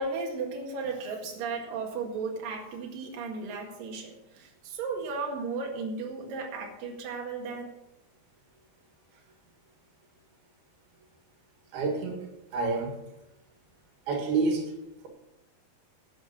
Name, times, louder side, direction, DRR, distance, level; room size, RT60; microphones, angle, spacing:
voice 1, 0.0-7.7, right 4 dB, 70° right, 0 dB, 3.5 m, -35 dB
voice 2, 11.7-12.3 12.5-13.0 14.1-14.6, right 4 dB, 90° right, 3 dB, 3.9 m, -28 dB
12.0 x 8.9 x 7.3 m, 0.90 s
omnidirectional pair, 4.3 m